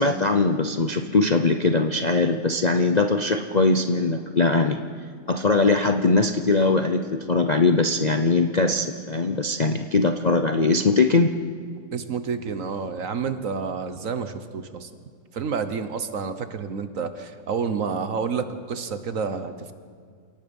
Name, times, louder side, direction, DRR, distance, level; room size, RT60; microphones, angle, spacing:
voice 1, 0.0-4.8 5.3-11.3, left 3 dB, 90° left, 5 dB, 0.3 m, -21 dB
voice 2, 11.9-14.9 15.3-19.7, right 5 dB, 50° right, 10 dB, 1.3 m, -29 dB
28.5 x 17.5 x 5.4 m, 2.1 s
omnidirectional pair, 2.0 m